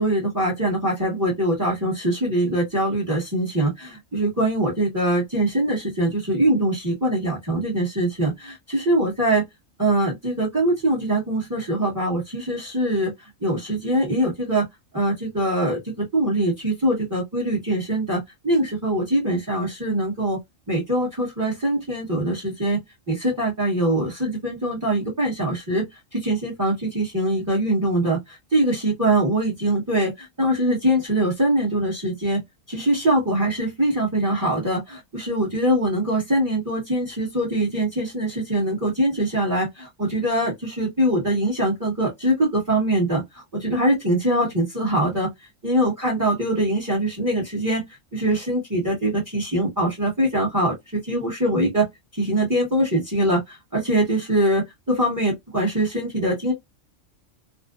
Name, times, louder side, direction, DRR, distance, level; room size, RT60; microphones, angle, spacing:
voice 1, 0.0-9.4 9.8-13.1 13.4-14.7 14.9-20.4 20.7-22.8 23.1-25.9 26.1-32.4 32.7-45.3 45.6-47.8 48.1-51.9 52.2-56.5, right 1 dB, 15° right, 0.9 m, -23 dB
2.6 x 2.1 x 2.3 m
omnidirectional pair, 1.3 m